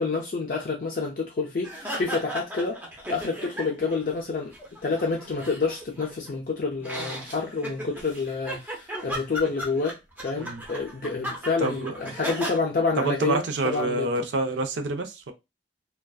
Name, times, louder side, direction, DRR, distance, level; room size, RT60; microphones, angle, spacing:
voice 1, 0.0-2.8 3.1-4.5 4.8-10.0 10.2-14.1, left 4 dB, 50° left, 0.4 m, -28 dB
sound 1, 1.6-4.0 4.3-6.3 6.8-12.6, equal, 10° right, 0.5 m, -36 dB
voice 2, 11.6-11.9 13.0-15.3, right 2 dB, 75° right, 0.5 m, -27 dB
2.4 x 2.2 x 2.3 m
head